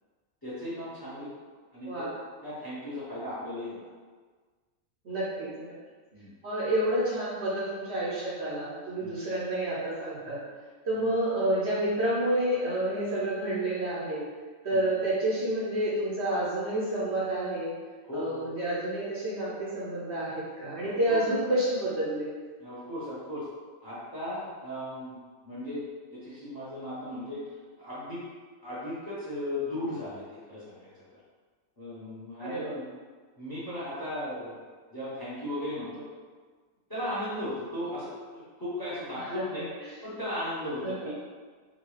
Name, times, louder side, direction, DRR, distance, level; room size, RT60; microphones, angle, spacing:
voice 1, 0.4-1.3 1.7-2.0 2.4-3.9 6.1-6.3 9.0-9.1 10.9-11.1 14.7-14.8 18.0-18.5 20.8-21.2 22.6-23.4 23.8-25.2 25.4-25.8 26.1-27.4 27.8-28.2 28.6-30.9 31.8-32.8 33.4-34.6 34.9-36.0 36.9-39.7 40.0-41.1, left 1 dB, 20° left, -9 dB, 0.8 m, -36 dB
voice 2, 5.0-5.7 6.4-10.4 10.8-14.2 14.6-17.7 18.1-22.3 32.4-32.7 39.2-39.6 40.8-41.1, right 1 dB, 55° right, -8 dB, 0.9 m, -29 dB
3.7 x 2.3 x 3.2 m, 1.5 s
omnidirectional pair, 1.5 m